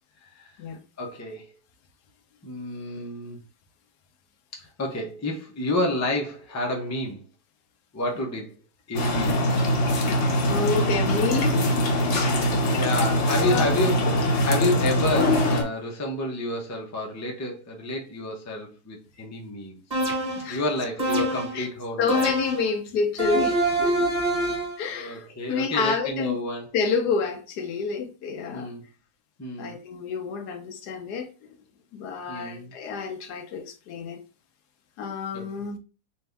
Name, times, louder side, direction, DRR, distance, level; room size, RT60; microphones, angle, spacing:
voice 1, 1.0-1.5 2.4-3.4 4.5-7.2 7.9-8.5 8.9-9.5 12.2-20.0 20.5-22.3 25.0-26.7 28.5-28.8 29.4-29.8 32.3-32.7 35.3-35.6, left 1 dB, 15° left, 0.5 m, -30 dB
sound 1, 8.9-15.6, equal, 55° left, 1.0 m, -22 dB
voice 2, 10.1-11.7 12.1-12.5 13.4-13.7 20.0-20.6 21.1-21.2 21.5-21.7 22.0-24.1 24.8-26.4 26.7-28.7 29.6-31.3 31.9-34.2 35.0-35.8, left 5 dB, 80° left, 1.2 m, -29 dB
sound 2, 19.9-20.5 21.0-21.6 22.1-22.7 23.2-24.8, right 2 dB, 25° right, 1.5 m, -25 dB
4.2 x 2.7 x 3.3 m
omnidirectional pair, 1.7 m